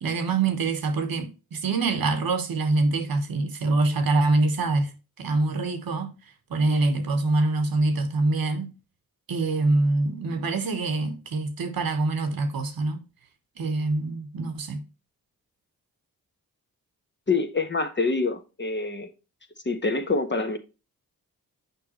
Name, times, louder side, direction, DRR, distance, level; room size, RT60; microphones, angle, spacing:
voice 1, 0.0-4.9 5.2-6.1 6.5-8.7 9.3-13.0 13.6-14.8, right 3 dB, 70° right, 1.2 m, -25 dB
voice 2, 17.3-19.1 19.6-20.6, left 3 dB, 30° left, 1.2 m, -26 dB
6.6 x 5.2 x 3.0 m
cardioid pair, 55°, 36 cm